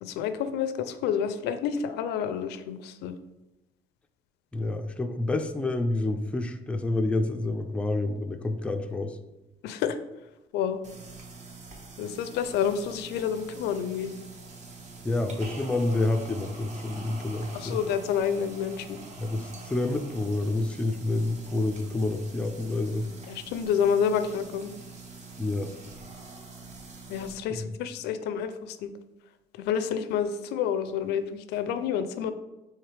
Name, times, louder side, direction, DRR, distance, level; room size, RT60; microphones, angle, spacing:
voice 1, 0.0-3.1 9.6-10.0 10.5-10.8 12.0-14.1 17.5-19.0 23.3-24.7 27.1-28.9 29.6-32.3, left 8 dB, 80° left, 11 dB, 0.4 m, -29 dB
voice 2, 4.5-9.2 15.0-17.8 19.2-23.1 25.4-25.7 27.5-27.7, left 2 dB, 5° left, 5 dB, 0.3 m, -28 dB
sound 1, 10.8-27.3, right 3 dB, 45° right, 0.8 m, -45 dB
4.6 x 3.2 x 3.2 m, 1.0 s
cardioid pair, 110°, 17 cm